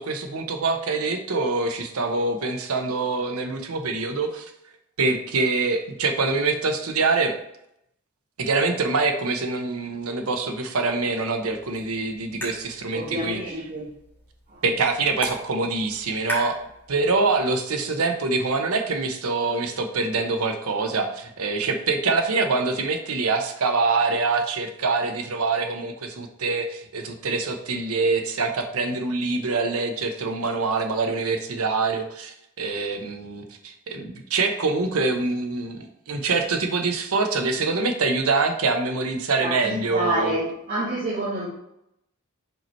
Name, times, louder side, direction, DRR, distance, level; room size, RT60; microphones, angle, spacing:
voice 1, 0.0-4.5 5.0-7.4 8.4-13.4 14.6-16.6 16.9-40.3, right 3 dB, 80° right, 5 dB, 0.8 m, -25 dB
sound 1, 11.5-17.5, equal, 10° left, 2.5 m, -38 dB
voice 2, 12.9-13.9 14.5-14.6 39.4-41.5, right 1 dB, 40° right, -10 dB, 1.8 m, -28 dB
5.5 x 4.4 x 4.3 m, 0.80 s
head